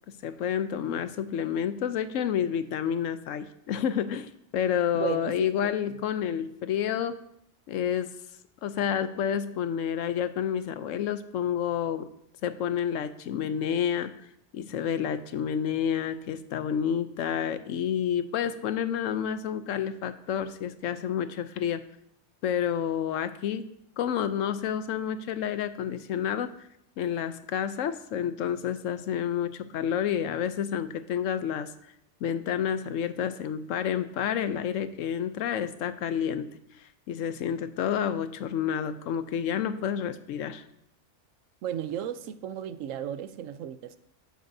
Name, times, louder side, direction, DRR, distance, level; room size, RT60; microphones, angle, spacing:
voice 1, 0.1-7.1 7.7-8.1 8.6-12.1 12.4-14.1 14.5-21.8 22.4-23.7 24.0-26.5 27.0-31.7 32.2-36.5 37.1-40.6, left 9 dB, 90° left, 12 dB, 1.0 m, -29 dB
voice 2, 4.9-5.7 41.6-44.0, right 10 dB, 90° right, 12 dB, 1.0 m, -34 dB
11.0 x 9.3 x 2.7 m, 0.75 s
omnidirectional pair, 1.3 m